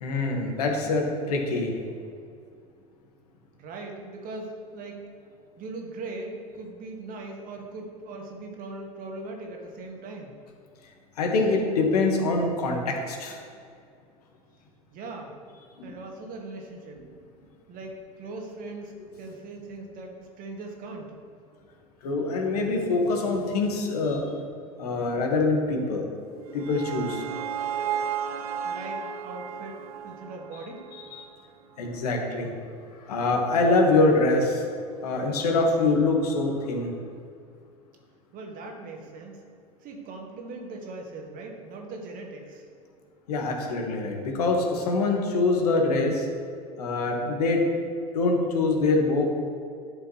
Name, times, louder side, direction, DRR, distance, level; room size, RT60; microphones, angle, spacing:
voice 1, 0.0-1.7 11.2-13.4 15.9-16.0 22.0-24.3 24.8-26.1 26.5-27.2 31.1-31.2 31.8-32.5 33.0-34.6 35.0-36.9 43.3-46.3 46.8-47.6 48.1-49.2, left 3 dB, 75° left, 1 dB, 1.6 m, -24 dB
voice 2, 3.6-5.0 5.6-10.3 14.9-15.4 15.8-17.0 17.7-21.2 28.6-30.9 38.3-39.4 39.8-42.7, right 2 dB, 45° right, 1 dB, 1.8 m, -40 dB
sound 1, 26.2-31.4, right 8 dB, 70° right, 0.5 m, -34 dB
11.5 x 6.6 x 3.2 m, 2.4 s
hypercardioid pair, 85°, 20 cm